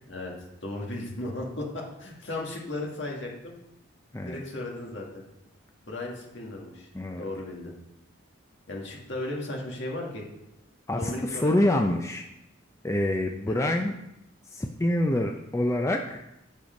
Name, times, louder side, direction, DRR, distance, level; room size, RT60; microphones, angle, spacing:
voice 1, 0.6-3.5 4.2-5.2 5.8-6.9 7.2-7.7 8.7-10.3 11.0-11.8 13.5-13.7, left 2 dB, 60° left, -1 dB, 2.0 m, -35 dB
voice 2, 6.9-7.2 10.9-12.3 12.8-13.9 14.4-16.2, left 1 dB, 15° left, 3 dB, 0.4 m, -26 dB
7.7 x 6.8 x 5.2 m, 0.88 s
head